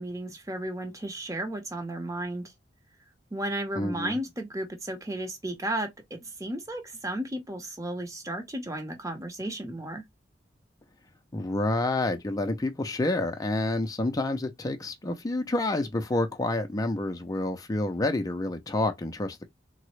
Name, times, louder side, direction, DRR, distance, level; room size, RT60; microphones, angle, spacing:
voice 1, 0.0-2.5 3.3-10.0, right 1 dB, 20° right, 0.8 m, -34 dB
voice 2, 3.8-4.1 11.3-19.4, left 2 dB, 20° left, 0.4 m, -28 dB
3.7 x 2.0 x 3.0 m
head